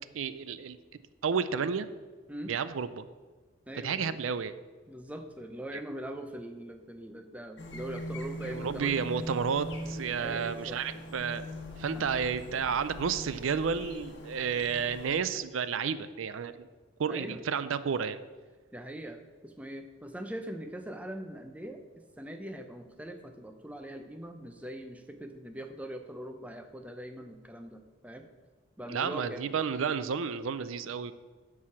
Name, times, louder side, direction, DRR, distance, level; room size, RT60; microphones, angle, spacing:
voice 1, 0.1-0.8 1.2-1.9 2.4-3.0 3.8-4.5 8.5-11.4 11.8-16.7 17.0-18.2 28.9-31.1, right 6 dB, 75° right, 14 dB, 0.4 m, -31 dB
voice 2, 3.7-4.2 4.9-9.0 10.2-10.8 11.9-12.1 17.1-17.4 18.7-21.8 22.2-28.3 28.8-29.5, right 1 dB, 5° right, 5 dB, 0.6 m, -42 dB
sound 1, 7.6-15.2, equal, 55° left, 1.3 m, -41 dB
9.9 x 4.8 x 7.2 m, 1.4 s
head